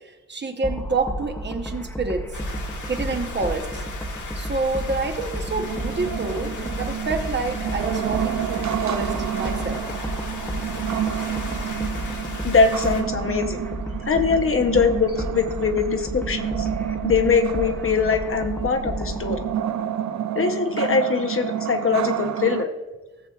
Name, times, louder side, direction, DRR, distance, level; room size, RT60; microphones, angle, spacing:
voice 1, 0.3-2.2 2.8-3.8 4.3-9.8, right 3 dB, 35° right, 4 dB, 0.8 m, -28 dB
sound 1, 0.6-19.5, right 1 dB, 5° left, 0.6 m, -32 dB
sound 2, 2.3-13.0, left 3 dB, 80° left, 1.4 m, -37 dB
sound 3, 5.5-22.6, right 10 dB, 65° right, 0.5 m, -30 dB
voice 2, 12.4-13.6 14.0-16.7 17.0-19.4 20.3-22.7, left 5 dB, 45° left, 6 dB, 0.7 m, -22 dB
17.5 x 7.3 x 2.3 m, 1.1 s
wide cardioid pair, 160°, 30 cm